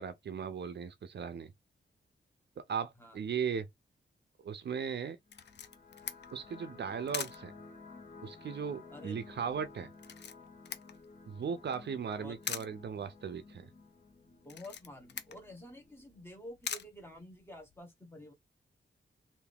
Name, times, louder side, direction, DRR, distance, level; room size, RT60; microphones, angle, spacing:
voice 1, 0.0-1.5 2.6-3.7 4.4-5.2 6.3-7.5 8.2-9.9 11.3-13.7, right 7 dB, 65° right, 0.6 m, -37 dB
Camera, 5.3-17.8, left 8 dB, 65° left, 0.5 m, -46 dB
sound 1, 5.3-16.2, left 3 dB, 45° left, 1.2 m, -54 dB
voice 2, 8.9-9.2 12.1-12.8 14.4-18.3, left 1 dB, 10° left, 1.2 m, -50 dB
3.4 x 2.6 x 3.5 m
wide cardioid pair, 140°, 19 cm